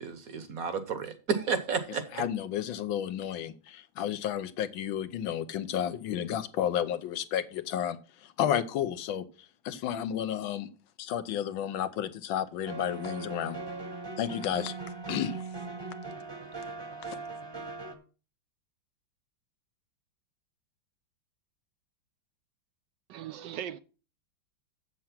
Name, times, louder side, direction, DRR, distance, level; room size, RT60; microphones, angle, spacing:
voice 1, 0.0-2.2, right 6 dB, 55° right, 1.3 m, -32 dB
voice 2, 2.1-9.2 9.6-10.7 11.0-13.6 14.2-14.7 15.1-15.4 17.1-17.2, left 10 dB, 80° left, 1.5 m, -32 dB
sound 1, 12.7-18.0, right 3 dB, 15° right, 0.9 m, -39 dB
voice 3, 23.1-23.8, right 10 dB, 75° right, 1.1 m, -38 dB
7.6 x 7.1 x 5.7 m
omnidirectional pair, 2.1 m